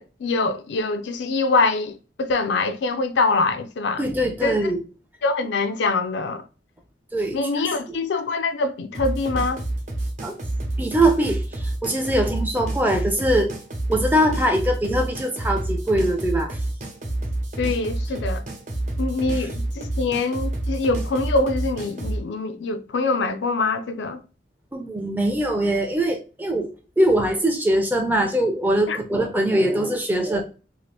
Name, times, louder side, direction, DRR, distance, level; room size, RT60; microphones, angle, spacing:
voice 1, 0.0-4.0 4.4-4.5 5.2-6.4 7.3-9.6 17.6-18.4 19.0-24.2 28.9-29.2, left 3 dB, 80° left, 0.4 m, -24 dB
voice 2, 4.0-4.8 7.1-7.4 10.2-10.3 10.8-13.5 13.9-16.6 19.3-19.5 24.7-26.7 27.0-30.4, right 1 dB, 10° right, 0.4 m, -22 dB
sound 1, 8.9-22.2, right 1 dB, 40° right, 0.7 m, -28 dB
2.7 x 2.4 x 3.2 m
head